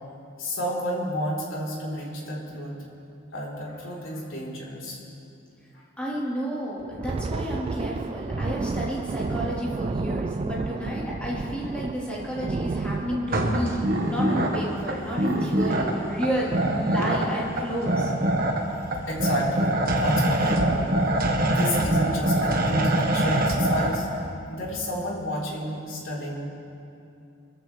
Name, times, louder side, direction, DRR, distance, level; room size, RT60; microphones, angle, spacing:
voice 1, 0.4-2.8 3.3-5.0 5.7-5.8 15.0-15.1 19.1-20.9 21.5-24.1 24.5-26.5, equal, 70° left, -5 dB, 3.7 m, -31 dB
voice 2, 6.0-18.1, equal, 5° left, -7 dB, 3.5 m, -31 dB
Thunder, 6.8-15.9 16.2-16.4 16.8-17.1 17.7-18.2, right 3 dB, 30° right, 0.3 m, -32 dB
sound 1, 13.3-24.0, right 1 dB, 45° right, 1.4 m, -24 dB
24.5 x 14.5 x 3.3 m, 2.6 s
head